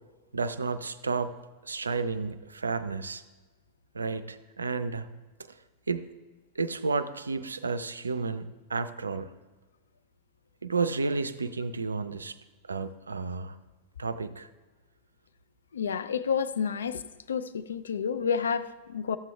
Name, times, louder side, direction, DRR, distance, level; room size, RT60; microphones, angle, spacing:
voice 1, 0.3-1.3 1.6-3.2 3.9-5.1 5.9-6.1 6.6-9.3 10.6-12.4 12.7-13.6 14.0-14.5, right 4 dB, 75° right, 0.4 m, -31 dB
voice 2, 15.7-17.0 17.3-19.2, left 6 dB, 70° left, 0.4 m, -30 dB
12.5 x 7.5 x 3.3 m
figure-of-eight pair, 90°, 0 cm